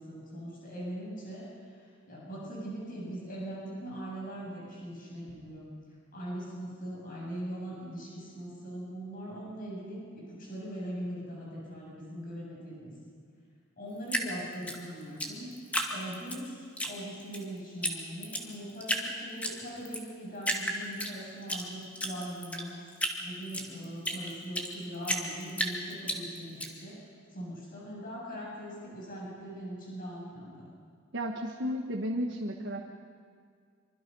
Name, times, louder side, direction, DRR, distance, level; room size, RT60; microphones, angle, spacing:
voice 1, 0.0-1.4 2.1-5.7 6.1-12.9 13.8-15.5 15.9-22.7 23.2-27.0 27.3-30.7, right 1 dB, 40° left, -4 dB, 7.7 m, -41 dB
Drip, 14.1-16.4 16.8-17.4 17.8-17.9 18.2-19.1 19.4-20.0 20.4-21.6 22.0-24.7 25.1-26.7, equal, 5° left, 2.2 m, -32 dB
voice 2, 31.1-32.8, equal, 60° right, 0 dB, 1.5 m, -33 dB
25.0 x 25.0 x 5.6 m, 2.1 s
head